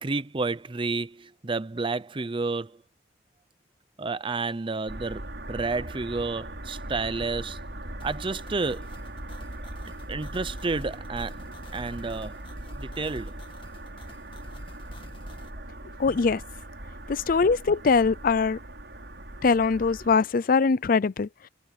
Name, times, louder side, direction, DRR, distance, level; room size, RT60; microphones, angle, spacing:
voice 1, 0.0-2.8 4.0-7.6 8.0-8.9 10.1-11.4 11.7-12.4 12.8-13.4, right 3 dB, 30° right, 0.6 m, -30 dB
sound 1, 4.9-20.2, right 1 dB, 75° right, 6.0 m, -40 dB
sound 2, 8.0-15.5, left 2 dB, 30° left, 2.3 m, -52 dB
voice 2, 16.0-16.4 17.1-18.6 19.4-21.3, left 4 dB, 50° left, 0.5 m, -22 dB
head